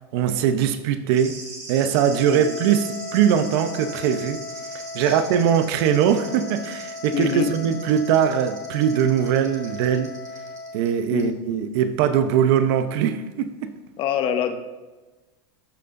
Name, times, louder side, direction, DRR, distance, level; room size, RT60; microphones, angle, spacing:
voice 1, 0.1-1.4 1.7-4.4 4.9-10.1 10.7-13.7, right 8 dB, 65° right, 0.8 m, -21 dB
sound 1, 1.1-10.9 11.2-11.3, right 2 dB, 25° right, 2.3 m, -41 dB
Wind instrument woodwind instrument, 1.9-10.8, left 3 dB, 65° left, 2.4 m, -37 dB
voice 2, 7.1-7.5 11.1-11.4 14.0-14.6, left 8 dB, 40° left, 0.9 m, -25 dB
13.0 x 6.7 x 2.6 m
supercardioid pair, 130°, 14 cm